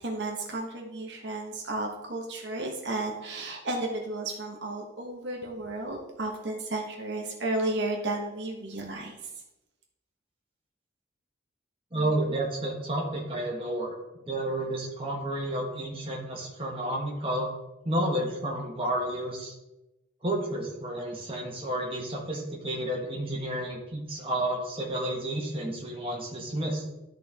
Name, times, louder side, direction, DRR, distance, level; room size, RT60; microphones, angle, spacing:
voice 1, 0.0-9.1, right 2 dB, 60° right, 0 dB, 1.2 m, -33 dB
voice 2, 11.9-13.9 14.3-17.5 17.8-19.5 20.2-26.8, right 1 dB, 30° right, -2 dB, 1.6 m, -31 dB
12.5 x 4.6 x 3.5 m, 0.97 s
head